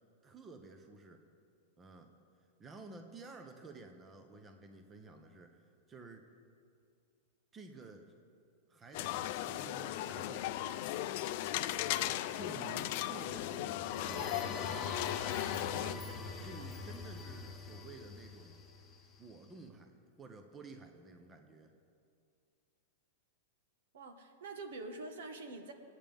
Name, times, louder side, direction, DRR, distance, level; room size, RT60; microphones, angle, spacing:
voice 1, 0.2-1.2 1.8-2.1 2.6-6.3 7.5-8.1 8.7-10.7 12.0-15.0 15.8-18.6 19.2-21.7, right 3 dB, 15° right, 6 dB, 0.8 m, -52 dB
sound 1, 8.9-16.0, left 14 dB, 50° left, 0.4 m, -37 dB
sound 2, 13.6-19.3, left 4 dB, 10° left, 1.1 m, -44 dB
voice 2, 23.9-25.7, right 3 dB, 80° right, 5 dB, 1.5 m, -45 dB
23.5 x 9.0 x 3.5 m, 2.3 s
supercardioid pair, 160°, 0 cm